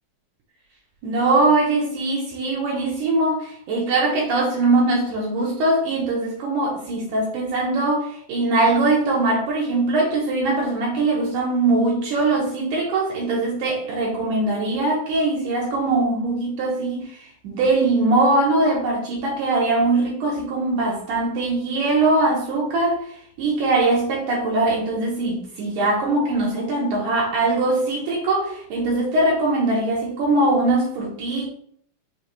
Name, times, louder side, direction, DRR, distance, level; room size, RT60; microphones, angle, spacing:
voice 1, 1.0-31.5, right 2 dB, 70° right, -2 dB, 2.2 m, -21 dB
5.7 x 2.6 x 3.2 m, 0.62 s
omnidirectional pair, 4.2 m